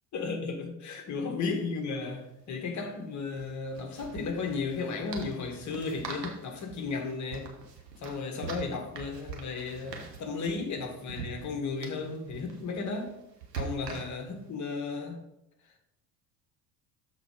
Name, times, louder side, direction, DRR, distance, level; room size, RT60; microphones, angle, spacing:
voice 1, 0.1-7.5 8.0-13.1 13.6-15.2, left 4 dB, 35° left, 1.7 m, -34 dB
sound 1, 1.3-1.4 1.6-1.8 3.3-14.5, right 5 dB, 85° right, 1.3 m, -44 dB
6.9 x 4.3 x 5.0 m
figure-of-eight pair, 70°, 48 cm